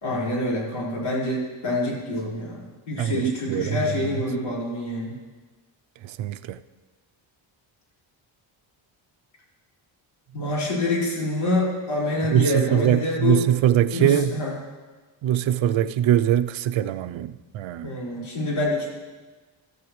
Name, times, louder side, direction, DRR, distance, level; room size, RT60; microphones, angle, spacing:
voice 1, 0.0-5.2 10.3-13.4 13.9-14.5 17.8-18.9, left 2 dB, 75° left, 4.8 m, -26 dB
voice 2, 3.0-3.8 4.0-4.2 6.0-6.6 12.3-14.4 15.2-17.9, right 11 dB, 70° right, 0.6 m, -22 dB
15.0 x 14.0 x 3.1 m
cardioid pair, 130°, 48 cm